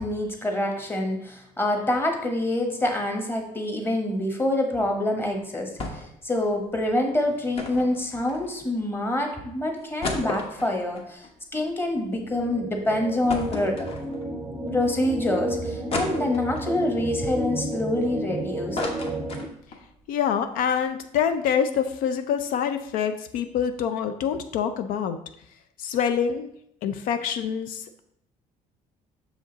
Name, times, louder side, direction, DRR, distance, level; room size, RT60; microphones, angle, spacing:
voice 1, 0.0-11.2 11.5-13.8 14.7-18.8, left 1 dB, 15° left, 3 dB, 1.1 m, -26 dB
sound 1, 5.8-6.2 6.5-6.6 7.5-8.8 9.3-9.4 9.8-12.2 12.6-12.7 13.3-14.4 14.9-15.0 15.9-16.7 17.3-18.3 18.5-19.9 20.2-20.3 20.6-20.8, left 3 dB, 40° left, 1.1 m, -34 dB
sound 2, 12.1-19.4, right 2 dB, 10° right, 0.5 m, -32 dB
voice 2, 20.1-25.2 25.8-26.5 26.8-28.0, left 8 dB, 80° left, 9 dB, 0.5 m, -26 dB
6.4 x 5.0 x 3.9 m, 0.74 s
cardioid pair, 135°, 14 cm